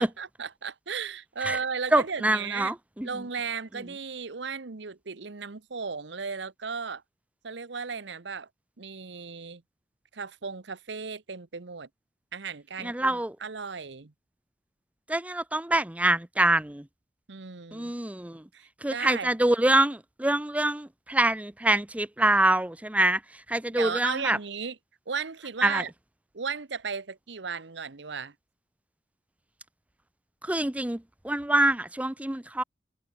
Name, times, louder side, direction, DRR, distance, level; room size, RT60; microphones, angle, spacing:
voice 1, 0.0-2.7 3.0-7.0 7.4-8.5 8.8-9.6 10.1-11.9 12.3-14.1 17.3-17.9 18.5-19.3 23.8-24.8 25.1-25.9 26.3-28.3, right 5 dB, 70° right, 1.0 m, -35 dB
voice 2, 1.9-3.1 12.8-13.4 15.1-16.8 17.7-18.4 18.8-23.2 23.5-24.4 25.6-25.8 30.4-32.6, right 1 dB, 10° right, 0.6 m, -25 dB
head